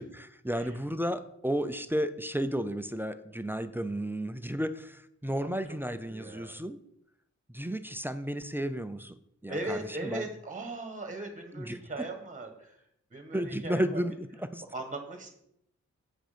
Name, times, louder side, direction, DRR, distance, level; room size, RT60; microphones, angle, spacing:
voice 1, 0.0-6.8 7.5-9.1 9.4-10.3 11.5-11.8 13.3-14.6, equal, 5° right, 11 dB, 0.4 m, -33 dB
voice 2, 6.1-6.5 9.5-12.8 13.1-14.0 14.7-15.3, right 2 dB, 25° right, 5 dB, 1.4 m, -38 dB
8.1 x 6.3 x 5.0 m, 0.74 s
wide cardioid pair, 150°, 29 cm